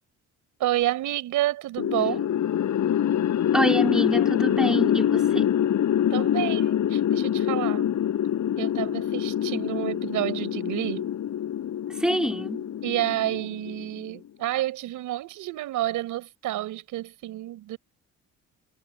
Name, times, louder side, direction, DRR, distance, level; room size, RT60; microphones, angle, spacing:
voice 1, 0.6-2.3 6.1-7.9 8.6-11.1 12.8-17.8, right 14 dB, 90° right, 6.0 m, -29 dB
sound 1, 1.8-14.1, left 10 dB, 70° left, 6.9 m, -25 dB
voice 2, 3.5-5.5 11.9-12.7, equal, ahead, 4.4 m, -26 dB
cardioid pair, 90°, 30 cm